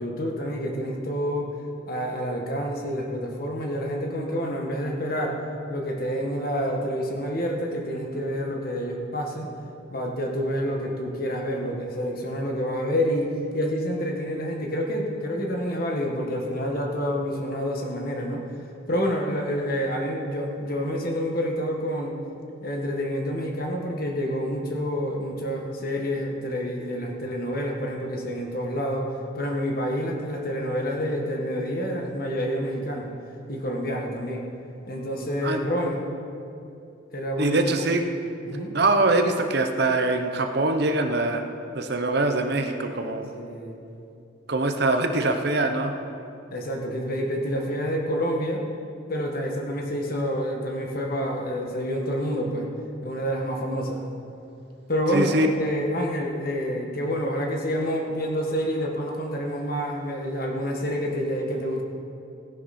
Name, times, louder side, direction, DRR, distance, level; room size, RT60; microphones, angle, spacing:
voice 1, 0.0-1.5 1.9-5.4 5.7-9.5 9.9-13.3 13.5-18.5 18.9-22.2 22.6-33.1 33.5-34.5 34.9-36.0 37.1-37.8 38.4-38.7 43.4-43.8 46.5-48.6 49.1-52.7 53.0-54.0 54.9-61.8, equal, 50° left, 1 dB, 1.7 m, -28 dB
voice 2, 37.4-38.0 38.7-41.4 41.7-43.3 44.5-45.9 55.1-55.5, right 2 dB, 55° right, 6 dB, 0.9 m, -23 dB
17.0 x 10.5 x 4.4 m, 2.7 s
head